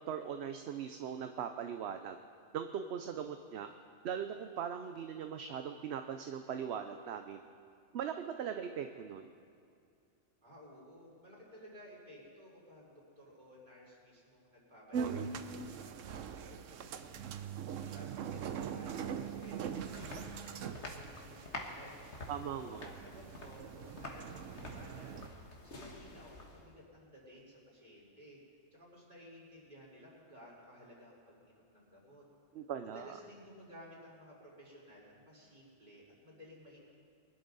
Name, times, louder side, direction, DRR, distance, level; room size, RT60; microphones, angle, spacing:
voice 1, 0.1-2.2 2.5-3.7 4.0-7.4 7.9-9.3 22.3-22.8 32.5-33.2, right 8 dB, 65° right, 7 dB, 0.9 m, -40 dB
voice 2, 10.4-28.4 28.7-32.2 32.8-36.9, equal, 35° right, -6 dB, 4.6 m, -56 dB
sound 1, 14.9-25.3, right 7 dB, 85° right, 1.1 m, -42 dB
sound 2, 19.0-26.8, left 2 dB, 65° left, 1.7 m, -49 dB
23.0 x 12.0 x 4.0 m, 2.4 s
omnidirectional pair, 1.3 m